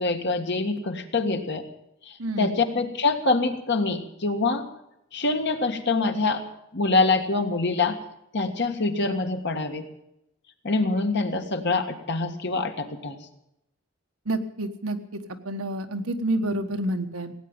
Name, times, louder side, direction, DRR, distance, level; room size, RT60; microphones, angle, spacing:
voice 1, 0.0-1.6 2.0-4.7 5.1-6.4 6.7-8.0 8.3-9.8 10.6-13.2, left 3 dB, 55° left, 5 dB, 1.7 m, -25 dB
voice 2, 2.2-2.5 14.3-17.3, right 1 dB, 85° right, 6 dB, 1.4 m, -29 dB
17.5 x 9.3 x 8.8 m, 0.83 s
head